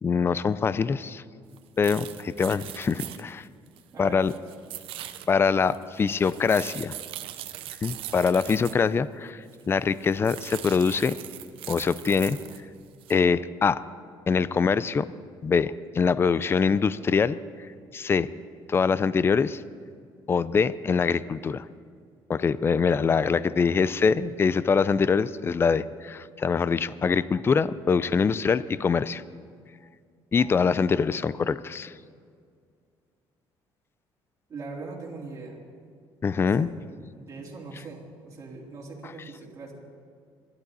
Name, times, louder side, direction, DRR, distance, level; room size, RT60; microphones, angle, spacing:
voice 1, 0.0-1.2 1.8-3.5 4.0-4.3 5.3-7.0 7.8-11.2 11.7-12.4 13.1-13.8 14.3-15.1 15.4-17.4 17.9-18.3 18.7-19.6 20.3-21.6 22.3-29.2 30.3-31.9 36.2-36.7, left 5 dB, 25° left, 16 dB, 0.4 m, -24 dB
sound 1, 1.5-1.6 1.8-3.9 4.2-8.9 9.5-9.6 9.9-12.6 13.0-13.2, right 13 dB, 75° right, 0.8 m, -40 dB
voice 2, 3.9-4.4 34.5-35.6 36.5-36.7 37.1-39.7, right 3 dB, 35° right, -4 dB, 3.7 m, -41 dB
26.0 x 12.0 x 4.1 m, 2.2 s
cardioid pair, 115°, 9 cm